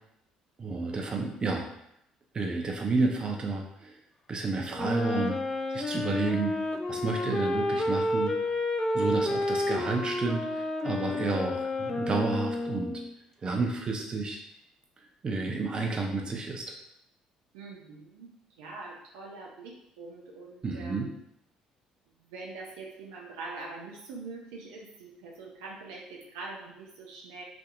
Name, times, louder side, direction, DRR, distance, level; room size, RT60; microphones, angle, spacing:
voice 1, 0.6-1.7 2.3-4.0 4.3-5.4 5.7-6.5 6.9-8.5 8.9-13.0 13.4-14.4 15.2-16.7 20.6-21.1, right 3 dB, 35° right, 1 dB, 0.7 m, -31 dB
Wind instrument woodwind instrument, 4.7-13.1, left 2 dB, 20° left, 0.4 m, -30 dB
voice 2, 17.5-18.3 18.6-21.1 22.2-27.4, right 3 dB, 80° right, -1 dB, 0.5 m, -43 dB
3.5 x 2.8 x 2.4 m, 0.76 s
hypercardioid pair, 60°, 2 cm